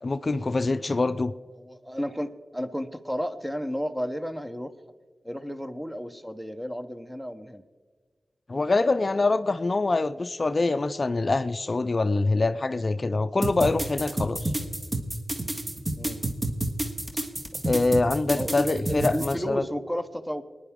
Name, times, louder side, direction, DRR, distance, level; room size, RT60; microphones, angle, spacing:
voice 1, 0.0-1.3 8.5-14.5 17.7-19.6, left 3 dB, 45° left, 11 dB, 0.4 m, -25 dB
voice 2, 1.6-4.7 5.2-7.6 16.0-16.3 18.3-20.4, equal, 5° right, 9 dB, 0.9 m, -32 dB
sound 1, 13.4-19.3, right 1 dB, 30° right, 1.6 m, -29 dB
24.0 x 10.0 x 3.6 m, 1.5 s
cardioid pair, 60°, 0 cm